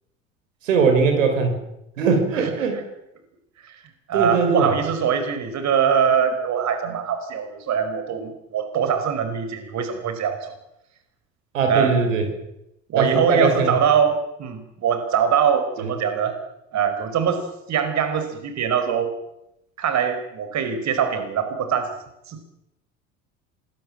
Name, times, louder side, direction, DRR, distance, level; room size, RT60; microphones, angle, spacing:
voice 1, 0.6-1.6 2.0-2.8 4.1-4.7 6.8-6.9 11.5-12.2 12.9-13.7 15.8-15.9, right 5 dB, 80° right, 6 dB, 6.1 m, -20 dB
voice 2, 4.1-10.5 11.7-11.9 12.9-16.4 16.7-17.4 17.7-19.1 19.8-21.9 22.3-22.4, right 7 dB, 45° right, 8 dB, 5.0 m, -22 dB
27.0 x 21.0 x 7.7 m, 0.85 s
hypercardioid pair, 70°, 39 cm